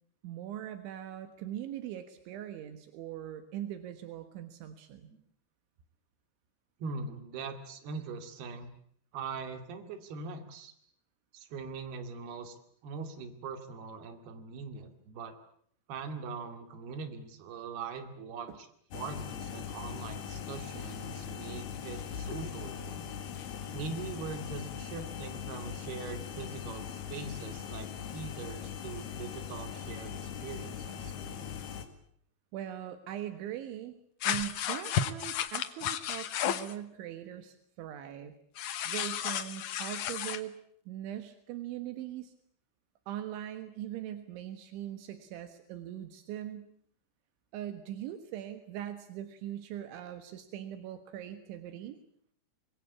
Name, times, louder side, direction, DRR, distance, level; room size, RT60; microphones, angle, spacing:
voice 1, 0.2-5.1 18.5-18.6 32.5-34.0 34.3-38.3 38.9-40.6 40.9-42.3 43.1-46.7 47.5-52.0, right 11 dB, 80° right, 8 dB, 3.8 m, -41 dB
voice 2, 6.8-8.7 9.1-10.7 11.3-12.6 12.8-15.4 15.9-18.7 18.9-23.1 23.7-31.5, right 4 dB, 60° right, 7 dB, 4.2 m, -42 dB
sound 1, 18.9-31.8, left 8 dB, 65° left, 3.9 m, -40 dB
sound 2, 34.2-36.7 38.6-40.4, left 10 dB, 85° left, 1.7 m, -33 dB
26.0 x 22.5 x 8.5 m, 0.66 s
omnidirectional pair, 5.4 m